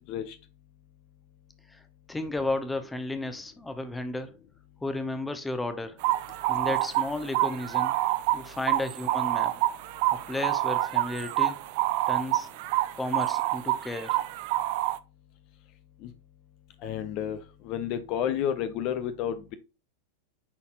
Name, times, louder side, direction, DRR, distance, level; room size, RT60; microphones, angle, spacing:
voice 1, 2.1-4.3 4.8-6.0 6.5-7.9 8.3-9.6 10.3-11.6 12.1-12.5 12.9-14.2, left 2 dB, 10° left, 0.9 m, -33 dB
sound 1, 6.0-15.0, right 16 dB, 50° right, 0.5 m, -27 dB
voice 2, 16.8-17.4 17.6-19.5, left 9 dB, 40° left, 0.6 m, -30 dB
9.5 x 4.1 x 2.5 m
figure-of-eight pair, 90°, 0 cm